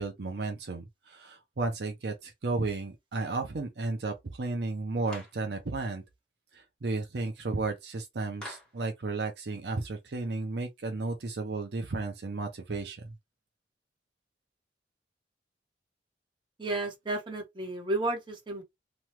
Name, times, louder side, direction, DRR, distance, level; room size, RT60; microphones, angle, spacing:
voice 1, 0.0-6.0 6.5-13.1, right 3 dB, 65° right, 0.6 m, -33 dB
Clapping, 5.1-5.4 8.4-8.8, left 1 dB, 5° left, 1.1 m, -44 dB
voice 2, 16.6-18.6, right 2 dB, 25° right, 1.0 m, -32 dB
3.0 x 2.3 x 3.0 m
head